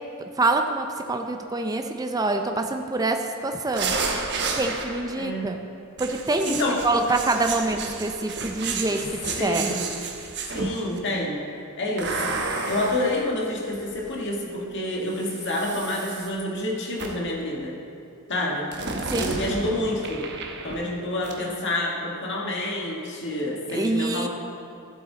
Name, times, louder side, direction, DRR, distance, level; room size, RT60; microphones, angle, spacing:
voice 1, 0.4-4.0 4.5-5.5 6.0-6.5 6.8-9.7 19.1-19.4 23.7-24.3, right 2 dB, 15° right, 5 dB, 0.5 m, -25 dB
sound 1, 3.7-5.3 6.0-11.0 12.0-14.1 15.1-16.3 17.0-17.4 18.7-21.0 21.2-21.4, right 4 dB, 55° right, 1.0 m, -32 dB
voice 2, 5.2-5.6 6.5-7.0 9.4-9.9 10.5-11.5 11.8-12.4 12.7-17.8 18.3-18.7 19.2-20.2 20.6-24.3, left 1 dB, 55° left, -2 dB, 1.8 m, -28 dB
14.0 x 7.9 x 4.0 m, 2.5 s
head